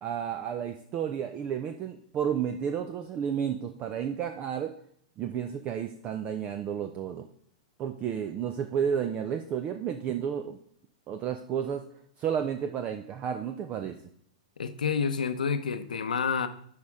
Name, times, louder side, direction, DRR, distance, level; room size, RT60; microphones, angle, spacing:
voice 1, 0.0-4.7 5.2-7.3 7.8-10.6 11.1-11.8 12.2-14.0, right 8 dB, 30° right, 7 dB, 0.5 m, -31 dB
voice 2, 14.6-16.5, left 6 dB, 85° left, 10 dB, 0.7 m, -29 dB
9.4 x 5.2 x 3.6 m, 0.62 s
hypercardioid pair, 125°, 4 cm